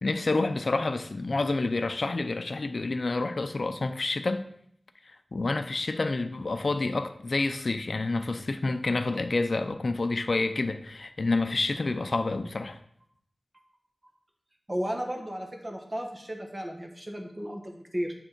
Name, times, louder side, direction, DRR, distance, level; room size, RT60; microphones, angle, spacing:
voice 1, 0.0-4.4 5.1-12.8, left 3 dB, 65° left, 8 dB, 0.5 m, -28 dB
voice 2, 14.7-18.1, equal, 30° right, 3 dB, 1.2 m, -34 dB
7.9 x 3.6 x 4.5 m, 0.67 s
wide cardioid pair, 65°, 0 cm